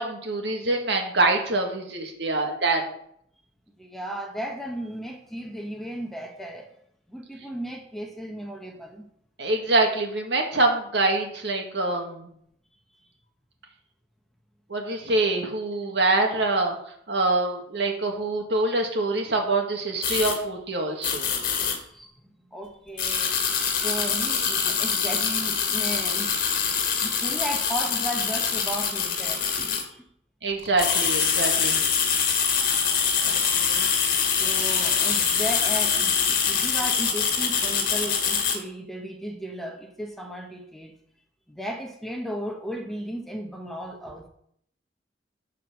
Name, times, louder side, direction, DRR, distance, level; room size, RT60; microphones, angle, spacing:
voice 1, 0.0-2.8 9.4-12.3 14.7-16.8 17.1-21.3 30.4-31.8, right 2 dB, 70° right, 2 dB, 2.0 m, -25 dB
voice 2, 3.8-6.7 7.1-9.1 21.8-22.1 22.5-23.3 23.8-26.4 26.8-30.0 33.2-33.9 34.4-40.9 41.5-44.3, right 1 dB, ahead, 2 dB, 1.1 m, -35 dB
sound 1, 20.0-20.4 21.0-21.8 23.0-29.8 30.6-38.6, left 6 dB, 50° left, 1.9 m, -24 dB
12.5 x 4.8 x 6.3 m, 0.70 s
head